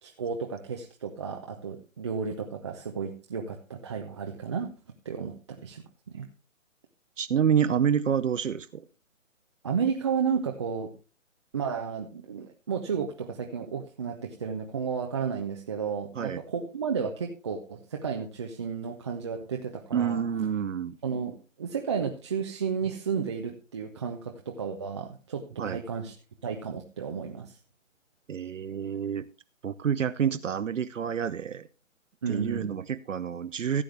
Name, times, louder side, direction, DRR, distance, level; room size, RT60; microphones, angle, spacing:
voice 1, 0.0-4.7 5.0-6.3 9.6-10.9 11.5-20.2 21.0-26.1 26.4-27.6 32.2-32.7, right 6 dB, 20° right, 2 dB, 0.6 m, -32 dB
voice 2, 7.2-8.8 16.2-16.4 19.9-21.0 25.6-25.8 28.3-29.3 29.6-31.7 32.3-33.8, right 8 dB, 70° right, 11 dB, 0.8 m, -28 dB
15.5 x 7.8 x 3.3 m, 0.33 s
figure-of-eight pair, 150°, 39 cm